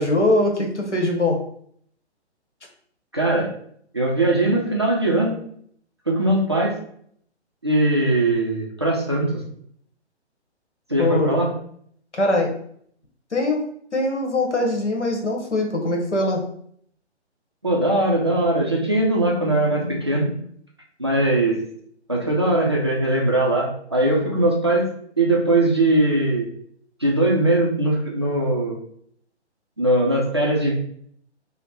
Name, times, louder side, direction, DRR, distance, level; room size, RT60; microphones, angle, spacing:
voice 1, 0.0-1.4 11.0-11.3 12.1-12.5 13.3-13.6 13.9-16.4 24.1-24.4, left 2 dB, 85° left, 1 dB, 1.1 m, -22 dB
voice 2, 3.1-3.5 3.9-5.4 6.1-6.8 7.6-9.4 10.9-11.6 17.6-20.4 21.0-21.6 22.1-24.9 25.2-26.5 27.0-28.8 29.8-30.7, right 1 dB, 25° right, -3 dB, 0.3 m, -20 dB
3.2 x 2.1 x 4.0 m, 0.64 s
figure-of-eight pair, 135°, 34 cm